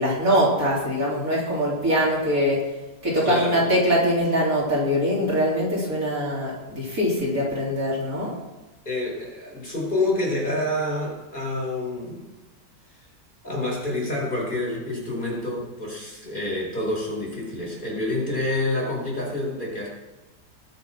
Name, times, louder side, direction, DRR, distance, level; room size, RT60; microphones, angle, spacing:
voice 1, 0.0-2.6 3.0-8.3, equal, 50° right, -5 dB, 3.9 m, -23 dB
voice 2, 3.2-3.7 8.8-12.2 13.4-19.9, left 1 dB, 30° left, -4 dB, 4.9 m, -28 dB
20.0 x 6.7 x 5.9 m, 1.1 s
omnidirectional pair, 1.8 m